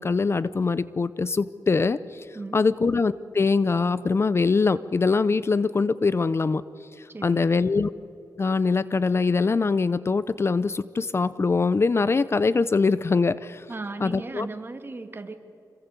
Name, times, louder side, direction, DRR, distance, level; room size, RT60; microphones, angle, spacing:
voice 1, 0.0-2.3 2.5-6.6 7.0-7.9 8.4-13.7 14.0-14.5, left 4 dB, 40° left, 16 dB, 0.6 m, -23 dB
voice 2, 7.1-7.6 13.7-15.4, right 3 dB, 35° right, 7 dB, 2.2 m, -36 dB
26.5 x 21.5 x 8.2 m, 2.7 s
wide cardioid pair, 100°, 7 cm